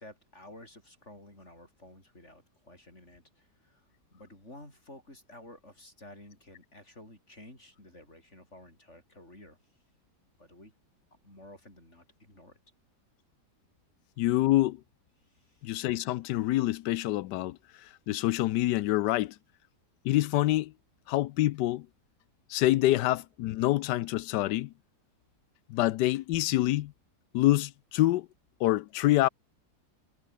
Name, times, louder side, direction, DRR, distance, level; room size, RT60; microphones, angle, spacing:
voice 1, 0.0-9.6 10.4-10.7 11.1-12.6 15.2-15.9, left 1 dB, 40° left, 8.0 m, -52 dB
voice 2, 14.2-14.8 15.6-17.6 18.1-19.3 20.0-20.7 21.1-21.9 22.5-24.7 25.7-26.9 27.3-28.3 28.6-29.3, left 16 dB, 85° left, 1.2 m, -26 dB
omnidirectional pair, 1.8 m